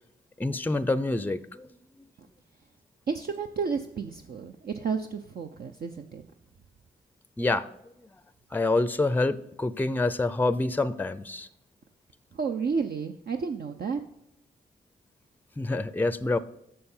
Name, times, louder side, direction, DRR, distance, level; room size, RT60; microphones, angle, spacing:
voice 1, 0.4-1.7 2.0-2.1 7.4-7.7 8.5-11.5 15.6-16.4, left 2 dB, 10° left, 15 dB, 0.5 m, -27 dB
voice 2, 3.1-6.2 12.3-14.0, right 5 dB, 55° right, 5 dB, 0.6 m, -31 dB
6.8 x 6.6 x 5.5 m, 0.82 s
cardioid pair, 55°, 19 cm